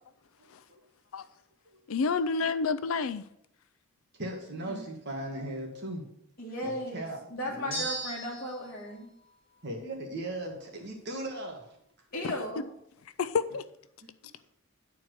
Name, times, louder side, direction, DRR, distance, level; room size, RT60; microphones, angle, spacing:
voice 1, 1.9-3.3 12.2-12.3 13.2-13.6, left 5 dB, 75° left, 0.5 m, -29 dB
voice 2, 4.1-6.0 6.6-7.2 7.5-7.8 9.6-11.7 14.0-14.1, right 1 dB, 50° right, 1.8 m, -38 dB
voice 3, 6.4-7.0 7.3-9.1 12.1-12.7, equal, 45° left, 1.7 m, -36 dB
sound 1, 7.7-8.7, right 1 dB, 25° left, 3.1 m, -36 dB
10.5 x 4.5 x 6.4 m
head